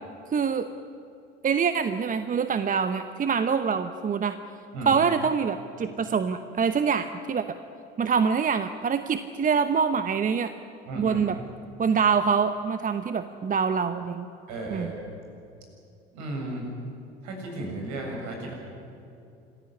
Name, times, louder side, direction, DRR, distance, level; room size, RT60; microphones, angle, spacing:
voice 1, 0.3-0.7 1.4-4.4 4.8-7.6 8.0-10.5 11.0-11.4 11.8-14.3 14.7-14.9, right 6 dB, 25° right, 10 dB, 0.9 m, -25 dB
voice 2, 10.9-11.2 14.5-14.9 16.1-16.6 17.2-18.6, right 2 dB, 55° right, 1 dB, 7.4 m, -34 dB
26.5 x 15.0 x 9.7 m, 2.7 s
figure-of-eight pair, 70°, 33 cm